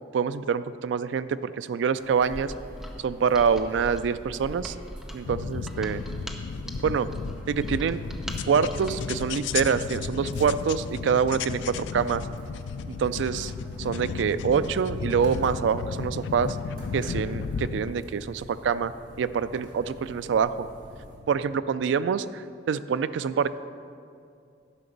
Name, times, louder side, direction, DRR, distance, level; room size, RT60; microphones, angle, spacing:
voice 1, 0.1-2.5 3.0-4.8 5.1-6.0 6.8-7.1 7.5-8.0 8.5-12.2 12.9-13.5 13.8-16.6 16.9-18.9 19.2-20.7 21.3-23.5, right 6 dB, 85° right, 14 dB, 0.3 m, -26 dB
sound 1, 1.9-21.2, equal, 50° right, 1.9 m, -48 dB
Mechanisms, 2.3-9.4, equal, 5° right, 0.6 m, -40 dB
sound 2, 5.2-17.9, left 6 dB, 80° left, 0.3 m, -34 dB
9.9 x 5.8 x 5.3 m, 2.4 s
head